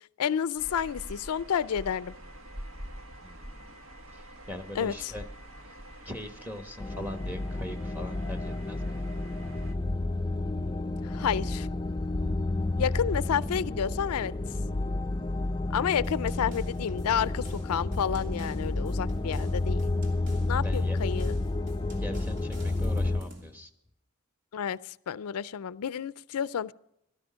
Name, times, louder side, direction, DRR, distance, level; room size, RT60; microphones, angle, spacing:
voice 1, 0.2-2.1 4.7-5.1 11.0-11.7 12.8-14.3 15.7-19.8 20.5-21.3 24.5-26.7, left 8 dB, 90° left, 18 dB, 0.4 m, -30 dB
sound 1, 0.6-9.7, equal, 80° right, 1.5 m, -46 dB
voice 2, 3.2-3.7 4.1-5.2 5.6-5.7 6.0-9.0 12.8-12.9 20.6-21.0 22.0-23.7, left 1 dB, 10° right, 5 dB, 1.2 m, -41 dB
sound 2, 6.8-23.2, left 2 dB, 20° left, 0.4 m, -30 dB
sound 3, 16.0-23.5, equal, 55° right, 2.9 m, -50 dB
15.5 x 13.0 x 5.1 m, 0.77 s
head